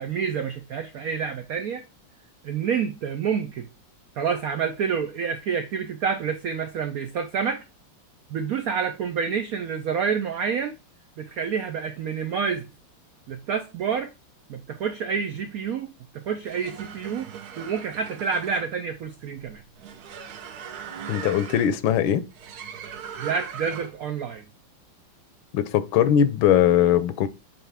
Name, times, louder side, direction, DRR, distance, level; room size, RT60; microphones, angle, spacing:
voice 1, 0.0-1.8 2.4-3.7 4.2-7.6 8.3-10.7 11.2-12.7 13.3-14.1 14.5-17.3 17.6-19.6 23.2-24.4, right 6 dB, 80° right, 0.8 m, -28 dB
sound 1, 16.3-24.1, right 8 dB, 60° right, 1.1 m, -39 dB
voice 2, 21.1-22.2 25.5-27.3, left 10 dB, 75° left, 1.4 m, -20 dB
7.4 x 4.3 x 3.4 m
omnidirectional pair, 2.2 m